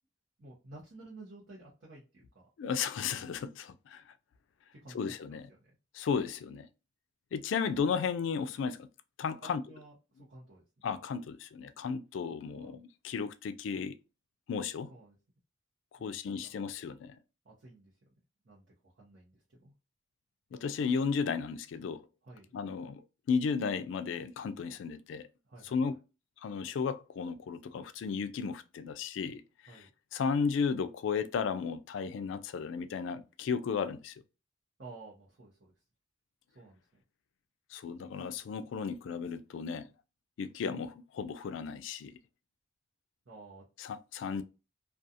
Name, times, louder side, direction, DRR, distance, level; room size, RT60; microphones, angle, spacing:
voice 1, 0.4-2.4 4.7-5.6 9.4-10.6 12.5-12.8 14.9-15.2 16.0-16.2 16.4-16.6 17.4-17.9 18.4-19.7 22.2-22.5 25.4-26.0 29.7-29.9 34.8-35.7 36.5-37.0 43.3-43.7, right 2 dB, 60° right, 0.8 m, -53 dB
voice 2, 2.6-4.0 4.9-5.5 5.9-6.7 7.3-8.9 9.2-9.6 10.8-13.9 14.5-14.9 16.0-17.2 20.5-22.0 22.5-23.0 23.3-25.2 25.6-26.0 26.4-29.4 30.1-34.2 37.7-39.9 40.4-42.1 43.8-44.4, left 6 dB, 75° left, 0.3 m, -34 dB
2.4 x 2.3 x 2.6 m
head